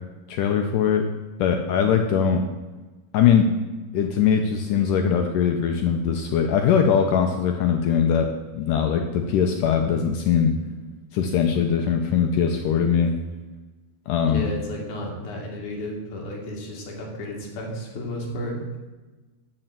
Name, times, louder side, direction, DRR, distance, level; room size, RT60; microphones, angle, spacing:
voice 1, 0.3-1.1 1.4-2.5 3.1-3.5 3.9-10.6 11.1-13.1 14.1-14.5, left 7 dB, 80° left, 5 dB, 1.9 m, -21 dB
voice 2, 9.8-10.1 14.2-18.8, equal, 55° left, -1 dB, 3.4 m, -33 dB
12.0 x 5.6 x 7.4 m, 1.2 s
omnidirectional pair, 4.6 m